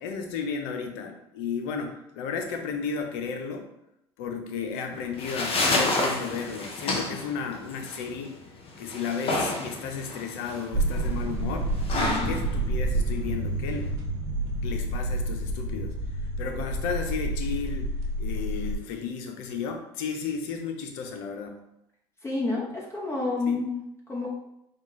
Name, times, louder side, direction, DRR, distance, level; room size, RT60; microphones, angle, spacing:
voice 1, 0.0-3.7 4.2-8.4 8.8-13.9 14.6-15.9 16.2-17.9 18.2-21.7 23.5-23.6, left 6 dB, 80° left, 4 dB, 0.6 m, -33 dB
sound 1, 4.9-13.9, left 2 dB, 45° left, 0.9 m, -30 dB
sound 2, 10.7-18.8, right 1 dB, 85° right, 0.7 m, -29 dB
voice 2, 12.0-12.3 22.2-24.3, left 3 dB, 20° left, -3 dB, 1.0 m, -30 dB
4.2 x 2.4 x 3.1 m, 0.82 s
supercardioid pair, 80°, 13 cm